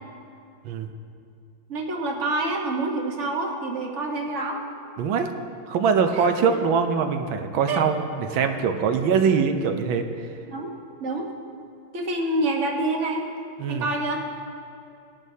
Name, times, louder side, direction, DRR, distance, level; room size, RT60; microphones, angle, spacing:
voice 1, 1.7-4.6 6.1-6.6 7.7-7.8 10.5-10.7 11.0-11.3 11.9-13.3 13.7-14.2, right 2 dB, 40° right, 1 dB, 1.4 m, -27 dB
voice 2, 5.0-5.3 5.7-10.3 13.6-13.9, right 6 dB, 80° right, 6 dB, 1.6 m, -23 dB
18.5 x 11.0 x 2.8 m, 2.6 s
omnidirectional pair, 2.2 m